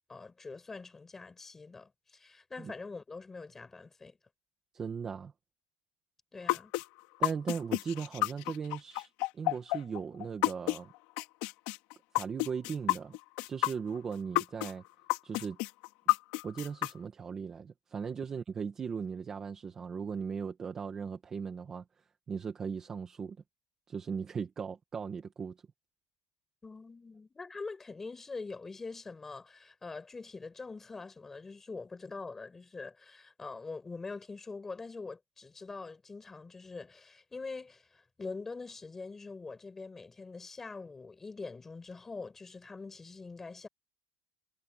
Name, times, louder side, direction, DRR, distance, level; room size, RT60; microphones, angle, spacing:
voice 1, 0.1-4.2 6.3-6.7 26.6-43.7, left 4 dB, 10° left, 5.8 m, -44 dB
voice 2, 4.7-5.3 7.2-10.9 12.1-13.2 13.5-14.8 15.2-15.6 16.4-21.8 22.3-23.4 23.9-25.6, right 6 dB, 20° right, 1.6 m, -38 dB
sound 1, 6.5-10.8 11.2-14.7 15.1-16.9, left 20 dB, 60° left, 2.2 m, -30 dB
cardioid pair, 175°, 3 cm